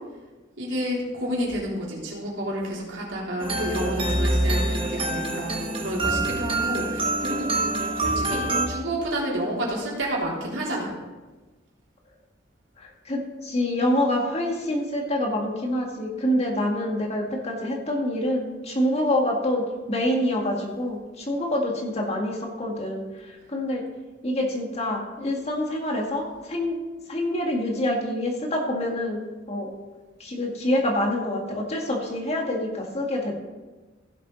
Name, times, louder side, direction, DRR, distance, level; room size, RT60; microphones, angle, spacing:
voice 1, 0.6-7.5 7.8-10.9, right 1 dB, 80° right, -4 dB, 3.6 m, -30 dB
sound 1, 3.4-8.7, right 2 dB, 30° right, 1.3 m, -25 dB
voice 2, 12.8-23.8 24.2-26.8 27.1-29.7 30.2-33.3, left 1 dB, 35° left, 0 dB, 2.0 m, -26 dB
16.0 x 7.4 x 4.1 m, 1.2 s
head